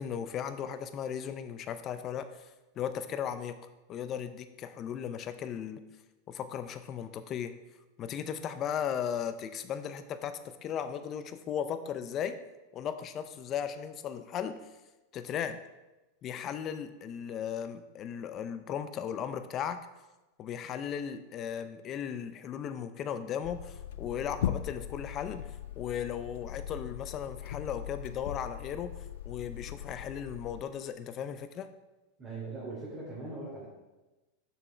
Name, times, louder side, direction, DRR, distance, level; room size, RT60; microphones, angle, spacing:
voice 1, 0.0-2.5 2.8-3.6 3.9-5.8 6.3-7.5 8.0-12.4 12.7-14.7 15.1-15.6 16.2-19.9 20.4-29.0 29.2-31.7, left 8 dB, 40° left, 10 dB, 0.7 m, -36 dB
sound 1, 23.4-30.6, left 11 dB, 75° left, 0.4 m, -39 dB
voice 2, 32.2-33.7, right 3 dB, 25° right, -8 dB, 3.0 m, -40 dB
6.9 x 6.1 x 4.6 m, 1.1 s
hypercardioid pair, 115°, 0 cm